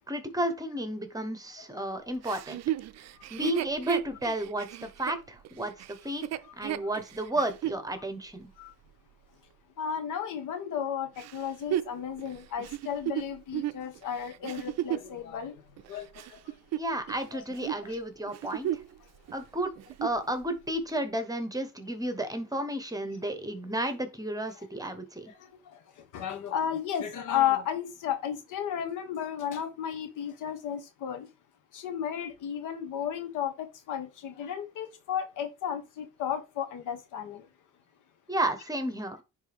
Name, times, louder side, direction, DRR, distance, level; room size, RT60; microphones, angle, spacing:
voice 1, 0.1-2.6 3.3-5.7 6.0-8.5 16.7-18.7 19.3-19.7 20.0-25.3 38.3-39.2, right 1 dB, 10° right, 1.2 m, -32 dB
Chuckle chortle, 2.2-7.8 8.4-8.5 11.2-15.1 15.8-17.2 17.5-17.8 18.3-19.0 19.3-19.4 19.8-20.3 20.9-21.0, right 13 dB, 60° right, 0.4 m, -34 dB
voice 2, 9.8-15.6 15.9-16.4 17.3-17.4 17.8-18.0 26.1-31.3 31.7-37.4, left 9 dB, 85° left, 1.3 m, -33 dB
9.9 x 3.4 x 3.5 m
cardioid pair, 90°, 30 cm